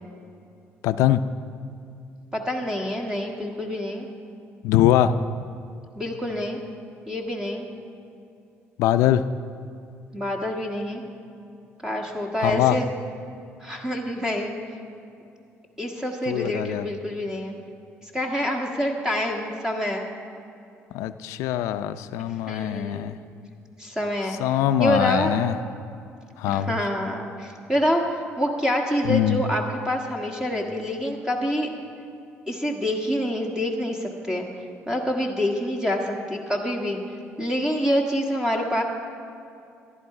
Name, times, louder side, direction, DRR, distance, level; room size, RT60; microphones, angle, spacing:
voice 1, 0.8-1.2 4.6-5.1 8.8-9.2 12.4-12.8 16.3-16.9 20.9-23.2 24.4-25.6 26.4-26.8 29.0-29.4, left 12 dB, 90° left, 11 dB, 0.4 m, -22 dB
voice 2, 2.3-4.1 5.9-6.6 7.1-7.7 10.1-11.0 11.8-12.9 13.6-14.5 15.8-17.5 18.0-20.0 22.5-23.2 23.8-24.4 24.8-25.3 26.5-31.7 32.5-34.5 34.9-37.0 37.4-38.8, equal, 10° right, 1 dB, 1.5 m, -26 dB
14.5 x 11.5 x 4.8 m, 2.6 s
cardioid pair, 100°, 5 cm